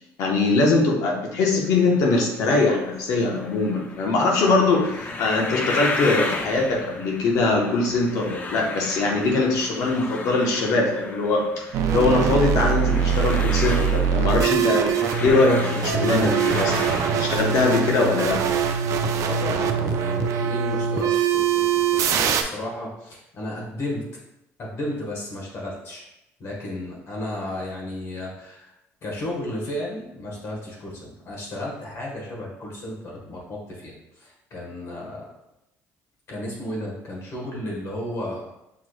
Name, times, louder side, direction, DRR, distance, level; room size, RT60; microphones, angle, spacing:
voice 1, 0.2-14.9 15.2-18.4, left 3 dB, 70° left, 0 dB, 1.1 m, -22 dB
sound 1, 1.6-20.5, left 2 dB, 30° left, 0.6 m, -35 dB
sound 2, 11.7-22.4, right 7 dB, 65° right, 0.4 m, -23 dB
voice 2, 19.2-24.1 24.6-26.1 26.4-28.7 29.0-35.3 36.3-38.5, left 1 dB, 50° left, -3 dB, 1.4 m, -33 dB
5.8 x 3.2 x 2.3 m, 0.88 s
cardioid pair, 100°, 6 cm